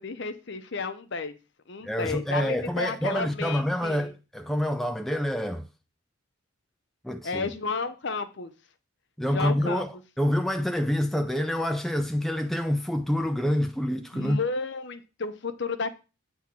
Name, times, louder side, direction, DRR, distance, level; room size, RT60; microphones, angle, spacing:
voice 1, 0.0-1.4 1.7-4.1 7.2-8.5 9.3-9.8 14.1-15.9, left 4 dB, 55° left, 0.8 m, -32 dB
voice 2, 1.8-5.6 7.0-7.5 9.2-14.4, equal, ahead, 0.4 m, -27 dB
8.5 x 3.6 x 6.0 m
head